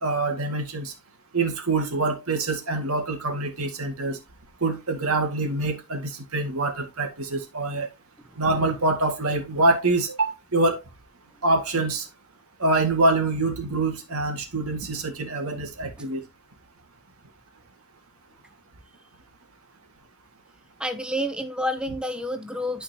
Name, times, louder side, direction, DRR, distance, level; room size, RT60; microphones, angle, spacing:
voice 1, 0.0-0.9 1.3-4.2 4.6-7.9 8.4-10.8 11.4-12.1 12.6-16.2, right 2 dB, 90° right, 2.1 m, -25 dB
voice 2, 20.8-22.8, equal, 5° right, 0.6 m, -29 dB
12.5 x 4.5 x 2.9 m
head